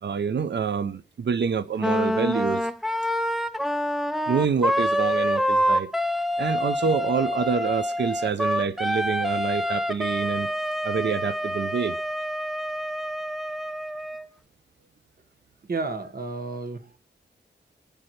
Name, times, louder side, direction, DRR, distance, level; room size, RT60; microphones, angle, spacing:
voice 1, 0.0-2.7 4.3-5.9 6.4-10.5 10.8-12.0, right 6 dB, 70° right, 14 dB, 0.6 m, -27 dB
Wind instrument woodwind instrument, 1.8-14.3, equal, ahead, 0.6 m, -26 dB
voice 2, 15.6-17.0, right 3 dB, 55° right, 8 dB, 1.6 m, -33 dB
26.0 x 10.0 x 3.2 m, 0.36 s
wide cardioid pair, 85°, 18 cm